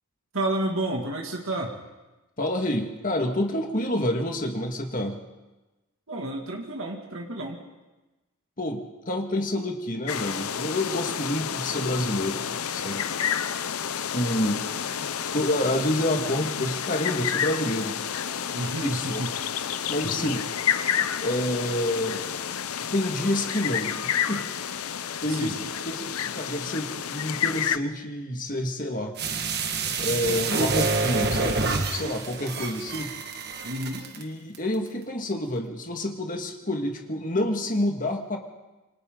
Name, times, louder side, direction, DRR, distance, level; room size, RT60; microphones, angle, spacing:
voice 1, 0.3-1.7 6.1-7.6 18.5-19.3 20.2-20.3 25.3-25.6 33.6-34.0, right 1 dB, 65° right, 1 dB, 2.4 m, -30 dB
voice 2, 2.4-5.2 8.6-13.1 14.1-14.6 15.3-18.0 18.8-19.2 19.9-20.4 21.2-22.3 22.9-24.5 25.2-25.5 25.8-29.2 30.0-33.1 34.2-38.4, left 1 dB, 40° left, 3 dB, 2.0 m, -28 dB
sound 1, 10.1-27.8, left 8 dB, 80° left, 0.7 m, -30 dB
sound 2, 29.2-34.2 34.5-34.6, right 4 dB, 45° right, 1.7 m, -27 dB
27.5 x 24.5 x 3.9 m, 1.1 s
head